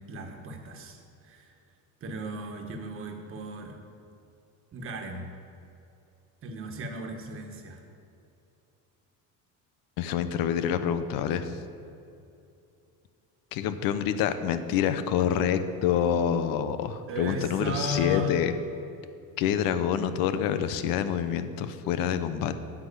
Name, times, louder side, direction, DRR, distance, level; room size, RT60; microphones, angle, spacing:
voice 1, 0.0-1.5 2.0-3.8 4.7-5.3 6.4-7.8 17.1-18.4, left 1 dB, 40° right, 3 dB, 1.5 m, -35 dB
voice 2, 10.0-11.6 13.5-18.5 19.4-22.6, left 9 dB, 80° left, 11 dB, 0.9 m, -27 dB
9.8 x 6.0 x 8.5 m, 2.6 s
cardioid pair, 145°, 34 cm